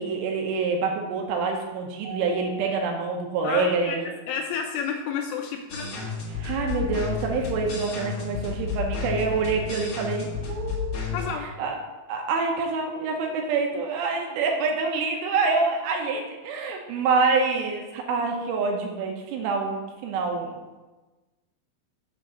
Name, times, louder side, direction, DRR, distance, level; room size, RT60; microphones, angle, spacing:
voice 1, 0.0-4.1 6.3-11.2 11.6-11.8 12.1-20.6, right 4 dB, 80° right, 2 dB, 3.3 m, -26 dB
Mallet percussion, 2.0-4.5, left 1 dB, 60° right, 3.3 m, -43 dB
voice 2, 3.4-4.0 4.3-6.0 11.1-11.5, left 6 dB, 85° left, 3 dB, 2.9 m, -30 dB
sound 1, 5.7-11.3, left 6 dB, 65° left, 1.8 m, -31 dB
7.7 x 5.0 x 7.1 m, 1.2 s
omnidirectional pair, 5.9 m